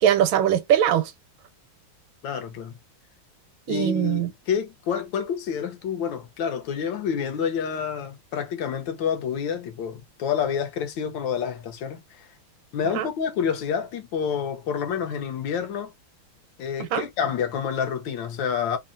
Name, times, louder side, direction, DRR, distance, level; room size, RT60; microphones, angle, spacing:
voice 1, 0.0-1.1 3.7-4.3 12.9-13.1 16.8-17.0, right 10 dB, 85° right, 1.5 m, -21 dB
voice 2, 2.2-2.8 3.7-12.3 12.7-15.9 16.6-18.8, left 7 dB, 75° left, 1.4 m, -28 dB
3.6 x 2.0 x 2.4 m
omnidirectional pair, 2.2 m